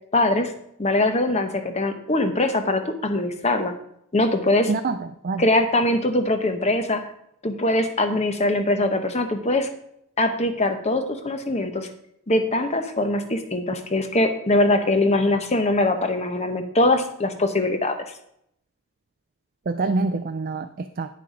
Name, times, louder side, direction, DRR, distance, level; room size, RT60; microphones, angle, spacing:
voice 1, 0.1-0.5 0.8-3.7 4.1-4.7 5.4-7.0 7.4-9.7 10.2-11.9 12.3-18.0, left 2 dB, 30° left, 7 dB, 0.9 m, -22 dB
voice 2, 4.7-5.4 19.7-21.1, right 3 dB, 40° right, 8 dB, 0.4 m, -26 dB
9.2 x 6.7 x 5.1 m, 0.73 s
head